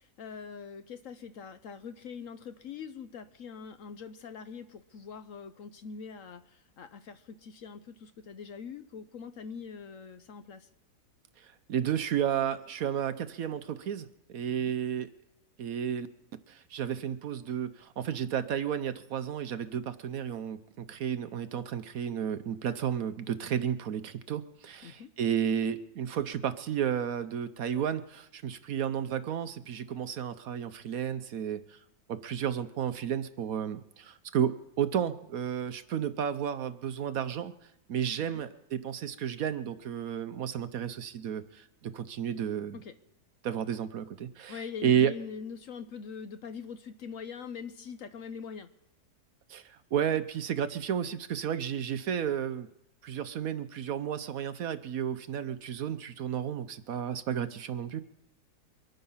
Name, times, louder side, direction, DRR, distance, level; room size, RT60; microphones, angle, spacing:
voice 1, 0.0-10.7 14.5-14.8 24.8-25.1 38.2-38.4 42.7-43.0 44.5-48.7, left 6 dB, 60° left, 10 dB, 1.0 m, -43 dB
voice 2, 11.4-15.1 15.6-16.1 16.5-31.8 32.1-37.5 37.9-42.8 43.4-45.1 49.5-52.7 53.0-58.0, right 9 dB, 65° right, 12 dB, 1.1 m, -32 dB
24.0 x 9.4 x 5.6 m, 0.86 s
omnidirectional pair, 1.8 m